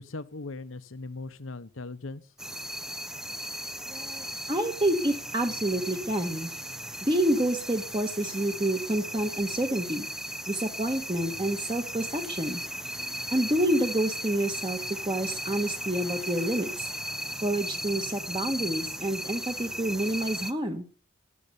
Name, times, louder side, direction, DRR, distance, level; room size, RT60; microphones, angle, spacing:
voice 1, 0.0-2.2, left 3 dB, 80° left, 14 dB, 1.0 m, -39 dB
sound 1, 2.4-20.5, equal, 5° right, 0.6 m, -36 dB
voice 2, 3.9-6.5 7.0-10.0 10.5-12.6 13.3-16.9 17.4-20.8, right 1 dB, 25° right, 5 dB, 1.5 m, -28 dB
15.0 x 11.0 x 6.9 m, 0.42 s
head